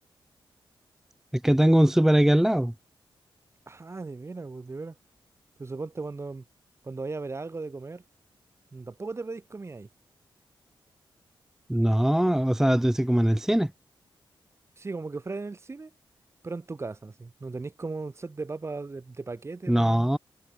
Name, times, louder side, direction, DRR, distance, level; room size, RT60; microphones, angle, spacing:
voice 1, 1.3-2.7 11.7-13.7 19.7-20.2, right 1 dB, 5° right, 0.5 m, -21 dB
voice 2, 3.7-4.9 5.6-6.4 6.8-8.0 8.7-9.9 14.8-15.9 16.4-20.1, right 3 dB, 30° right, 3.5 m, -37 dB
cardioid pair, 95°, 9 cm